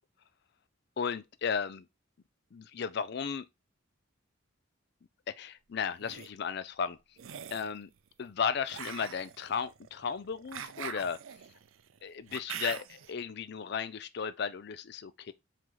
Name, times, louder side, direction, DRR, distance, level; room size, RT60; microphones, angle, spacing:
voice 1, 1.0-1.9 2.5-3.4 5.3-7.0 7.5-7.9 8.2-11.2 12.0-15.3, left 6 dB, 55° left, 0.4 m, -35 dB
sound 1, 5.8-6.3 7.2-7.7 8.7-13.1, right 9 dB, 75° right, 0.4 m, -43 dB
4.8 x 2.9 x 3.8 m
head